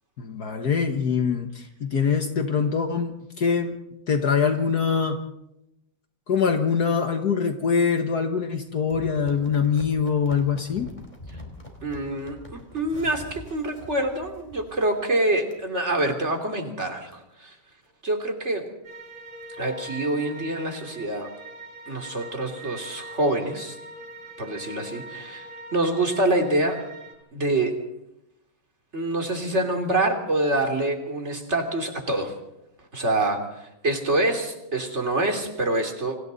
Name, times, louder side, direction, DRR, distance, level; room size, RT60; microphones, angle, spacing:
voice 1, 0.2-3.8 4.1-5.2 6.3-10.9, left 6 dB, 60° left, 5 dB, 1.8 m, -24 dB
sound 1, 8.9-15.1 15.5-15.6 16.1-16.3 16.7-16.8 17.1-17.2 17.7-17.9 18.3-18.4 18.6-18.7 19.0-19.9 20.5-20.6, left 1 dB, 25° left, 4.3 m, -45 dB
voice 2, 11.8-17.5 18.0-18.6 19.6-21.3 21.9-23.8 24.4-26.8 27.3-27.8 28.9-32.3 32.9-36.2, right 1 dB, 40° right, 4 dB, 3.3 m, -26 dB
sound 2, 18.8-27.1, right 1 dB, 90° right, 5.5 m, -41 dB
29.5 x 26.0 x 4.1 m, 0.87 s
omnidirectional pair, 1.9 m